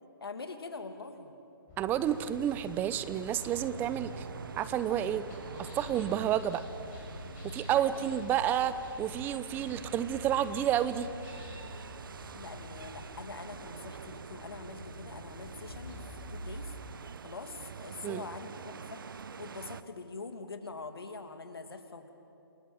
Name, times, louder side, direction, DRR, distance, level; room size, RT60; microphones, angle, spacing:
voice 1, 0.2-1.3 7.7-7.9 8.6-8.8 12.3-16.0 16.3-16.7 17.2-19.0 19.4-22.1, left 4 dB, 80° left, 6 dB, 2.8 m, -44 dB
sound 1, 1.7-17.0, left 2 dB, 25° left, 6.7 m, -48 dB
voice 2, 1.8-4.3 4.6-5.2 5.6-6.6 7.4-11.1 18.0-18.2, right 10 dB, 15° right, 14 dB, 0.8 m, -30 dB
sound 2, 2.0-19.8, right 6 dB, 65° right, 1.0 m, -46 dB
29.0 x 19.5 x 8.9 m, 2.8 s
hypercardioid pair, 145°, 12 cm